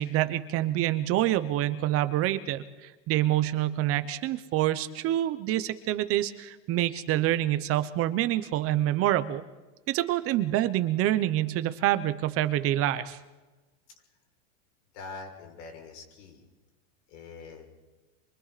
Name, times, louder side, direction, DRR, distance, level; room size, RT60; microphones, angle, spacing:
voice 1, 0.0-9.4 9.9-13.2, right 13 dB, 35° right, 12 dB, 1.0 m, -27 dB
voice 2, 14.9-16.4 17.1-17.6, left 4 dB, 65° left, 2 dB, 6.4 m, -44 dB
28.0 x 24.5 x 4.2 m, 1.2 s
supercardioid pair, 140°, 37 cm